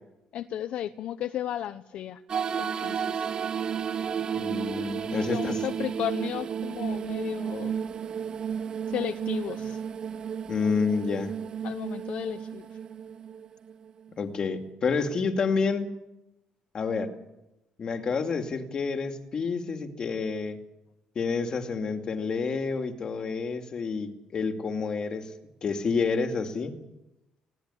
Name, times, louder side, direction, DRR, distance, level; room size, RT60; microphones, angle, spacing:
voice 1, 0.3-2.2 2.6-3.2 5.1-7.7 8.9-9.8 11.6-12.7, left 11 dB, 65° left, 11 dB, 0.8 m, -34 dB
sound 1, 2.3-14.1, right 7 dB, 40° right, 0.8 m, -32 dB
voice 2, 4.3-5.6 10.5-11.3 14.2-15.9 16.7-17.1 17.8-20.6 21.2-25.3 25.6-26.7, left 5 dB, 40° left, 5 dB, 2.5 m, -29 dB
20.5 x 17.0 x 9.9 m, 0.94 s
cardioid pair, 135°, 2 cm